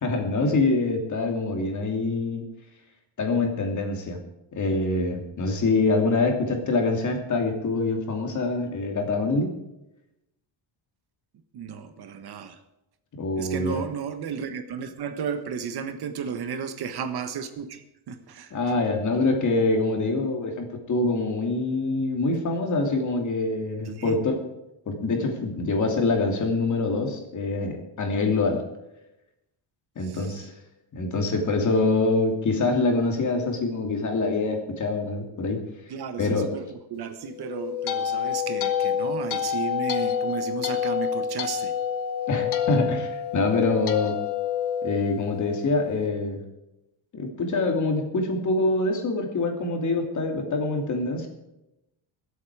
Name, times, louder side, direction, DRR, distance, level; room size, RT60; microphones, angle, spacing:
voice 1, 0.0-2.4 3.2-4.2 4.5-9.5 13.2-13.8 18.5-24.4 24.9-28.6 30.0-30.5 30.9-35.6 36.2-36.5 42.3-44.2 44.8-46.4 47.1-51.3, left 3 dB, 40° left, 3 dB, 2.8 m, -25 dB
voice 2, 11.5-12.6 13.4-18.6 23.8-24.2 30.0-30.4 35.9-41.7, right 7 dB, 55° right, 9 dB, 1.4 m, -34 dB
sound 1, 37.3-45.7, left 8 dB, 55° left, 1.6 m, -28 dB
23.0 x 8.4 x 4.8 m, 0.91 s
cardioid pair, 165°, 47 cm